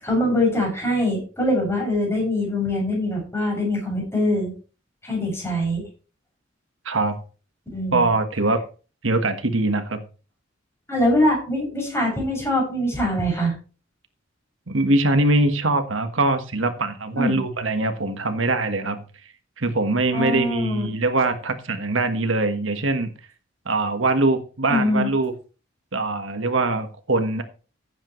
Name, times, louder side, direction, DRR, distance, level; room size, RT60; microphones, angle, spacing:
voice 1, 0.0-4.5 5.0-5.8 7.7-8.1 10.9-13.5 17.1-17.4 20.1-20.9 24.7-25.1, left 1 dB, 15° left, -2 dB, 7.0 m, -23 dB
voice 2, 6.8-7.1 7.9-8.6 9.0-10.0 14.7-19.0 19.6-23.1 23.6-25.3 25.9-27.4, right 2 dB, 85° right, 7 dB, 1.5 m, -22 dB
15.5 x 8.7 x 3.2 m, 0.35 s
head